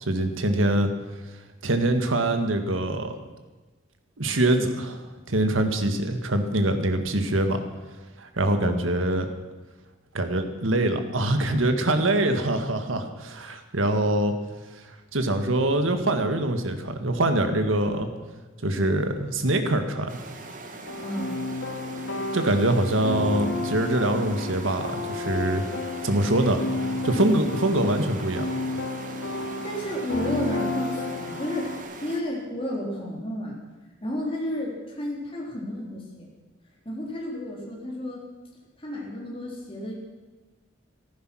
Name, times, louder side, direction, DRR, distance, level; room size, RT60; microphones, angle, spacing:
voice 1, 0.1-0.9 1.6-3.1 4.2-7.6 8.2-9.3 10.1-14.3 15.1-18.1 18.6-20.1 22.3-25.6 26.0-26.6 27.0-28.4, right 1 dB, 85° right, 7 dB, 1.7 m, -24 dB
voice 2, 8.5-8.8 21.0-21.4 29.4-31.7 32.0-33.6 34.0-36.3 36.9-38.2 38.8-39.9, left 1 dB, 30° left, -3 dB, 3.8 m, -32 dB
sound 1, 20.1-32.2, right 2 dB, 45° right, 1.7 m, -41 dB
sound 2, 20.9-31.8, left 2 dB, 75° left, 2.3 m, -32 dB
15.0 x 14.5 x 6.3 m, 1.2 s
head